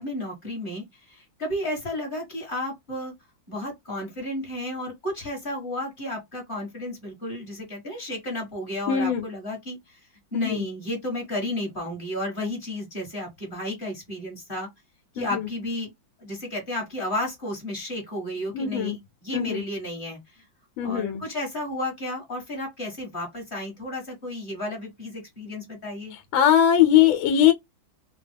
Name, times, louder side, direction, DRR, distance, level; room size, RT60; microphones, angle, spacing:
voice 1, 0.0-3.1 3.5-10.0 10.3-14.7 15.1-15.9 16.2-20.4 20.8-26.1, left 1 dB, 30° left, 1.3 m, -32 dB
voice 2, 8.9-9.2 10.3-10.6 15.2-15.5 18.5-19.0 19.3-19.6 20.8-21.2 26.3-27.5, left 10 dB, 85° left, 1.4 m, -20 dB
3.4 x 2.2 x 3.3 m
omnidirectional pair, 2.2 m